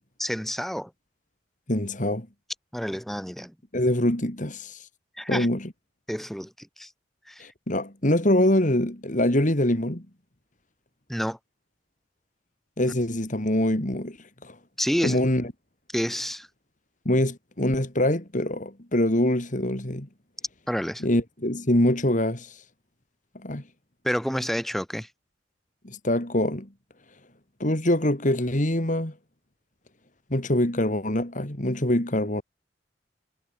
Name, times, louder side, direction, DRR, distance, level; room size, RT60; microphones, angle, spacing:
voice 1, 0.2-0.9 2.7-3.5 5.2-5.5 6.1-6.9 7.3-7.4 11.1-11.4 14.8-15.2 15.9-16.5 20.7-21.0 24.0-25.1, equal, ahead, 7.2 m, -29 dB
voice 2, 1.7-2.3 3.7-4.9 5.3-5.7 7.4-10.1 12.8-14.6 15.0-15.5 17.0-20.1 21.0-22.6 23.3-23.6 25.8-26.7 27.6-29.1 30.3-32.4, left 1 dB, 45° left, 3.3 m, -24 dB
head